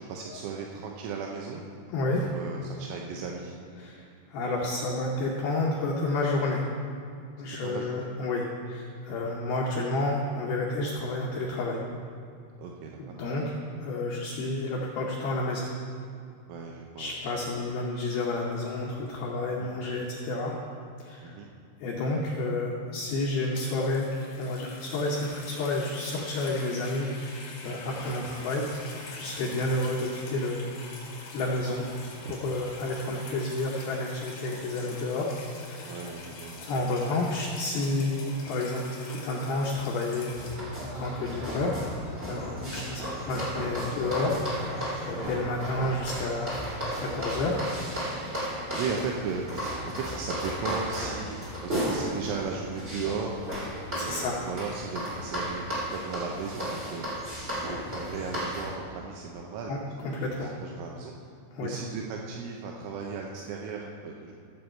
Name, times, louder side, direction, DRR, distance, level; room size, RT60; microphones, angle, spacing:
voice 1, 0.0-1.6 2.2-3.5 7.6-8.1 9.1-9.3 12.6-13.2 16.5-17.2 19.6-19.7 21.2-21.5 27.7-27.8 29.5-29.6 32.3-32.4 35.8-36.6 42.5-42.7 45.1-45.3 48.7-51.4 51.6-53.4 53.9-55.6 55.9-57.0 57.4-59.8 60.0-61.2 61.6-64.3, right 5 dB, 80° right, 0 dB, 3.1 m, -36 dB
voice 2, 1.9-2.3 3.8-6.7 7.4-11.8 13.0-13.5 13.8-15.7 17.0-20.6 21.0-21.4 21.8-27.1 27.6-28.7 29.1-30.8 31.3-31.9 32.3-36.0 36.6-41.8 42.3-44.4 44.7-47.6 54.0-54.4 59.7-60.6 61.5-61.8, left 2 dB, 85° left, -2 dB, 2.1 m, -30 dB
sound 1, 23.3-40.6, left 3 dB, 55° left, 2.9 m, -45 dB
sound 2, 40.3-58.7, equal, 20° right, 1.4 m, -34 dB
15.5 x 7.1 x 4.4 m, 2.4 s
omnidirectional pair, 5.7 m